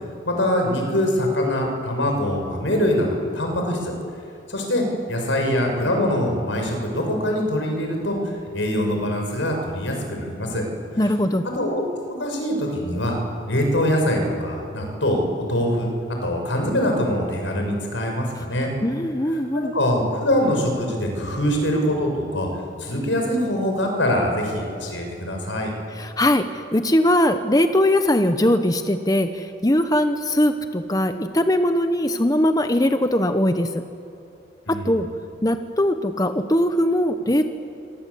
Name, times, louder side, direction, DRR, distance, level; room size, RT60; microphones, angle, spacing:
voice 1, 0.2-3.9 4.5-8.2 8.5-10.6 11.5-11.8 12.2-13.1 13.5-15.2 15.5-15.9 16.2-18.7 19.5-22.5 22.8-25.7 34.7-34.9, left 1 dB, 85° left, 2 dB, 6.7 m, -23 dB
voice 2, 11.0-11.5 18.8-19.7 25.9-33.8 34.7-35.1 35.4-37.4, left 1 dB, 20° left, 8 dB, 1.0 m, -20 dB
27.0 x 24.0 x 8.6 m, 2.8 s
head